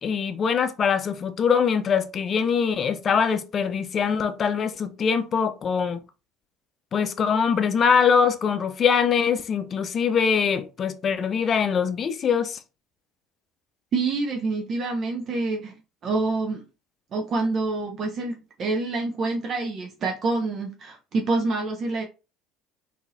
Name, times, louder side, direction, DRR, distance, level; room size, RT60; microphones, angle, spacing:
voice 1, 0.0-6.0 6.9-12.6, left 6 dB, 40° left, 0.5 m, -23 dB
voice 2, 13.9-15.7 16.0-16.6 17.1-22.0, right 3 dB, 45° right, 0.5 m, -27 dB
3.7 x 2.7 x 2.5 m
figure-of-eight pair, 60°, 0 cm